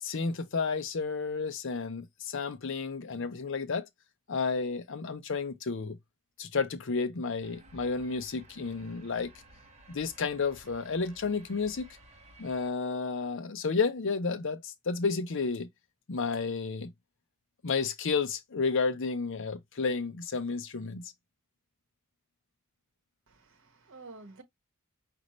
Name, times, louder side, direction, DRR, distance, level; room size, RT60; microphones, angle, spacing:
voice 1, 0.0-3.9 4.3-6.0 6.4-9.3 9.9-11.9 12.4-15.7 16.1-16.9 17.6-21.1, left 4 dB, 60° left, 0.6 m, -31 dB
sound 1, 7.4-12.7, right 1 dB, 30° right, 1.1 m, -56 dB
voice 2, 23.3-24.4, right 3 dB, 60° right, 1.2 m, -50 dB
5.2 x 2.6 x 3.0 m
head